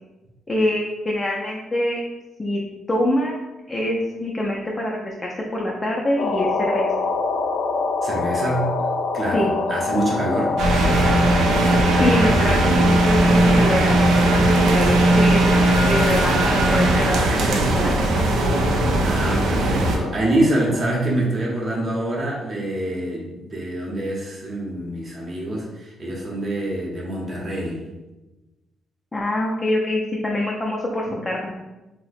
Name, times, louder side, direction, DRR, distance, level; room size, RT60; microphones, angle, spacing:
voice 1, 0.5-2.0 2.4-2.6 2.9-3.3 3.7-6.9 9.3-9.5 12.0-15.5 15.9-18.0 29.1-31.5, left 1 dB, 20° left, -2 dB, 0.5 m, -24 dB
sound 1, 6.2-20.9, left 3 dB, 85° left, 0.4 m, -27 dB
voice 2, 8.0-8.7 9.1-10.6 18.8-27.8, right 1 dB, 30° right, -4 dB, 0.8 m, -25 dB
sound 2, 10.6-20.0, right 1 dB, 80° right, 0.5 m, -18 dB
2.8 x 2.1 x 4.1 m, 1.1 s
cardioid pair, 90°, 0 cm